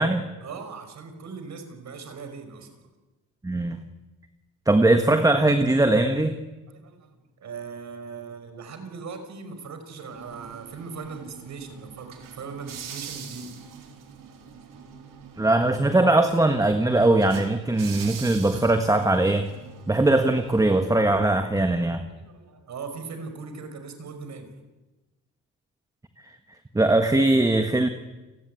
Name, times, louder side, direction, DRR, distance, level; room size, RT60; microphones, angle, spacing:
voice 1, 0.4-2.9 6.7-13.5 22.2-24.5, right 5 dB, 55° right, 8 dB, 5.3 m, -39 dB
voice 2, 3.4-3.8 4.6-6.4 15.4-19.5 19.9-22.0 26.7-27.9, right 2 dB, 10° right, 7 dB, 1.5 m, -20 dB
sound 1, 10.1-20.9, right 7 dB, 75° right, 4.5 m, -44 dB
29.5 x 18.0 x 9.7 m, 1.1 s
cardioid pair, 140°, 33 cm